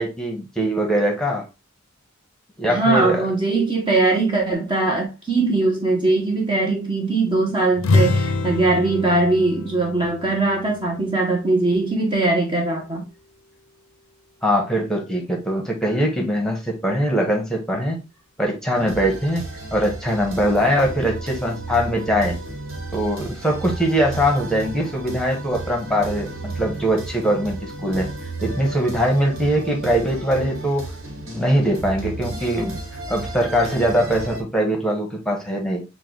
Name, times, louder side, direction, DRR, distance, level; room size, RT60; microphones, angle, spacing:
voice 1, 0.0-1.4 2.6-3.3 14.4-18.0 18.4-19.5 19.7-22.4 22.9-28.1 28.4-30.9 31.2-32.8 33.1-35.8, equal, 5° left, 1.1 m, -22 dB
voice 2, 2.7-13.0, right 2 dB, 25° right, 0.9 m, -20 dB
sound 1, 7.8-11.5, left 3 dB, 85° left, 0.5 m, -24 dB
sound 2, 18.7-34.4, right 2 dB, 70° right, 1.3 m, -33 dB
6.6 x 2.3 x 3.2 m
head